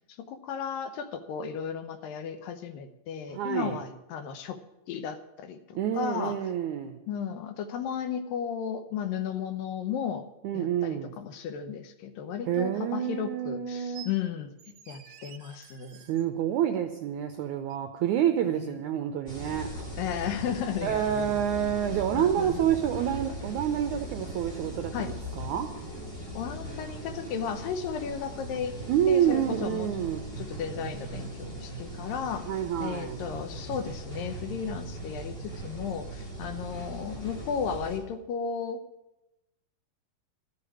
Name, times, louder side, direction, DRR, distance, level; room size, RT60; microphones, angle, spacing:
voice 1, 0.2-4.6 4.9-6.4 7.1-10.3 10.5-14.5 14.9-16.0 20.0-21.3 22.1-22.7 24.9-25.1 26.4-28.8 29.1-29.9 30.4-32.5 32.8-38.8, left 7 dB, 75° left, 9 dB, 2.5 m, -34 dB
voice 2, 3.3-3.8 5.7-7.0 10.4-11.1 12.5-14.1 16.0-19.7 20.8-25.7 28.9-30.2 32.5-33.2, right 10 dB, 85° right, 6 dB, 1.7 m, -28 dB
sound 1, 13.9-14.1 14.6-16.3 17.7-17.8, right 10 dB, 65° right, 1.8 m, -49 dB
sound 2, 19.3-38.0, right 1 dB, 15° left, 2.4 m, -39 dB
12.5 x 6.8 x 9.7 m, 0.96 s
omnidirectional pair, 4.2 m